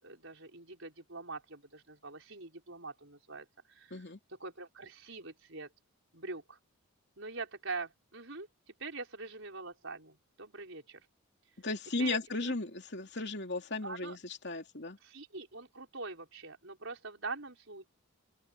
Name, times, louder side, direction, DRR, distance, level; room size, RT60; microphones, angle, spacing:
voice 1, 0.0-5.7 6.1-6.6 7.2-11.1 12.0-12.5 13.8-14.2 15.0-17.9, right 3 dB, 60° right, 6.1 m, -44 dB
voice 2, 11.6-15.0, left 3 dB, 50° left, 2.9 m, -36 dB
open air
head